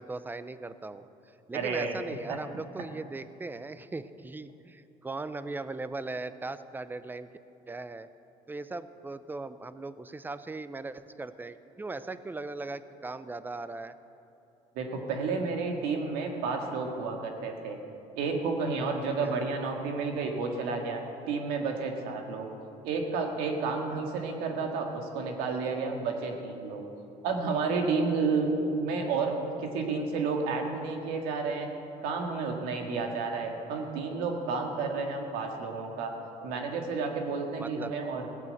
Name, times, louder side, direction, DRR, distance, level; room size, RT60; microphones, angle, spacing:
voice 1, 0.0-7.3 7.7-8.1 8.5-13.9 19.1-19.4 37.6-37.9, right 3 dB, 15° right, 13 dB, 0.6 m, -39 dB
voice 2, 1.5-2.0 2.3-2.4 14.8-17.8 18.2-22.5 22.8-26.8 27.2-31.7 32.0-36.1 36.4-38.3, right 4 dB, 90° right, 2 dB, 2.0 m, -31 dB
16.5 x 9.1 x 7.9 m, 2.8 s
cardioid pair, 110°, 15 cm